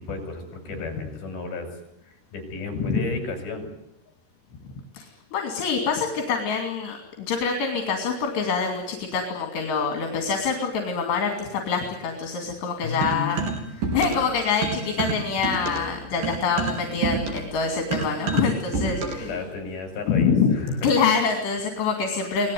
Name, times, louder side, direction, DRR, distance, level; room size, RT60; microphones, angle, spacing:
voice 1, 0.0-1.7 2.0-3.7 12.8-13.5 19.2-20.9, left 3 dB, 60° left, 6 dB, 7.7 m, -33 dB
voice 2, 4.7-19.3 20.1-20.6 20.8-22.5, left 5 dB, 75° left, 4 dB, 4.9 m, -25 dB
sound 1, 13.0-14.3 14.6-19.3, right 4 dB, 55° right, 5.1 m, -29 dB
26.5 x 19.5 x 9.5 m, 0.86 s
omnidirectional pair, 4.9 m